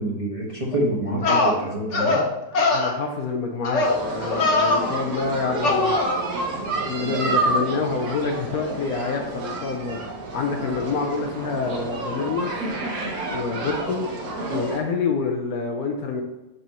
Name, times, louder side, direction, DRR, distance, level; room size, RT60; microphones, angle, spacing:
voice 1, 0.0-2.2, right 1 dB, 25° right, -6 dB, 1.3 m, -26 dB
sound 1, 0.7-0.8 1.2-1.5 1.9-2.2 2.5-2.9 3.6-4.0 4.2-4.9 5.6-6.1, left 3 dB, 55° left, 1.3 m, -21 dB
voice 2, 2.7-6.0 6.8-10.0 10.3-12.6 13.3-14.1 14.5-16.2, left 4 dB, 85° left, 2 dB, 1.2 m, -27 dB
sound 2, 3.8-14.8, right 2 dB, 85° right, 1.8 m, -29 dB
5.5 x 5.1 x 4.2 m, 0.99 s
omnidirectional pair, 1.5 m